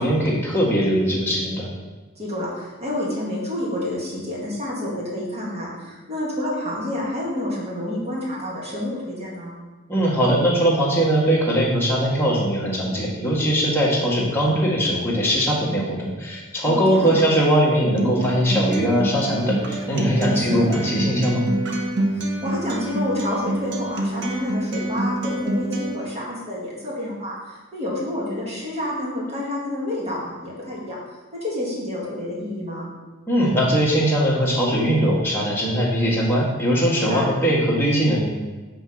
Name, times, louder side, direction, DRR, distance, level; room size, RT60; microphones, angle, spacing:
voice 1, 0.0-1.7 9.9-21.5 33.3-38.2, equal, 10° left, -5 dB, 1.5 m, -20 dB
voice 2, 2.2-9.5 16.7-17.2 20.1-20.6 22.1-31.0 31.3-32.9 37.0-37.3, left 1 dB, 30° right, -5 dB, 1.9 m, -29 dB
Acoustic guitar, 18.0-25.9, right 1 dB, 60° right, 0.8 m, -26 dB
5.7 x 3.6 x 5.8 m, 1.3 s
head